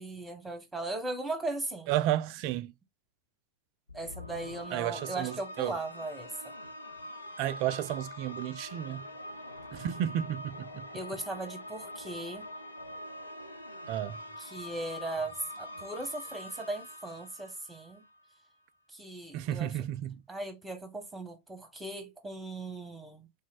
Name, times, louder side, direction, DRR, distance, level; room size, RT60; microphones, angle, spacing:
voice 1, 0.0-1.9 3.9-6.5 10.9-12.5 14.4-18.0 18.9-19.7 20.3-23.3, right 2 dB, 10° right, 1.0 m, -38 dB
voice 2, 1.9-2.7 4.7-5.8 7.4-9.0 9.7-10.9 13.9-14.2 19.3-20.2, right 12 dB, 45° right, 0.3 m, -32 dB
sound 1, 3.9-18.3, left 1 dB, 80° left, 0.5 m, -44 dB
3.3 x 3.0 x 2.3 m
figure-of-eight pair, 90°, 0 cm